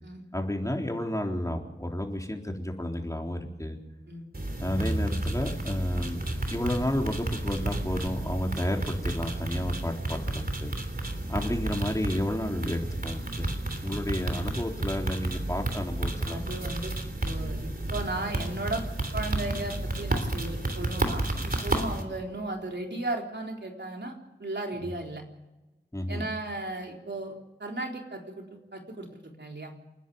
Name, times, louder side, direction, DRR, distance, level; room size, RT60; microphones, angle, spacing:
voice 1, 0.3-3.8 4.6-6.2 6.5-10.7 11.3-13.5 13.8-16.4 24.8-24.9 25.9-26.2, left 1 dB, 15° left, 2 dB, 3.8 m, -31 dB
sound 1, 4.3-22.0, right 1 dB, 55° right, 3.2 m, -31 dB
voice 2, 16.3-16.9 17.2-18.9 19.1-24.1 24.4-25.2 26.1-29.7, right 2 dB, 70° right, 1 dB, 3.8 m, -35 dB
28.0 x 10.0 x 9.4 m, 1.1 s
wide cardioid pair, 40°, 19 cm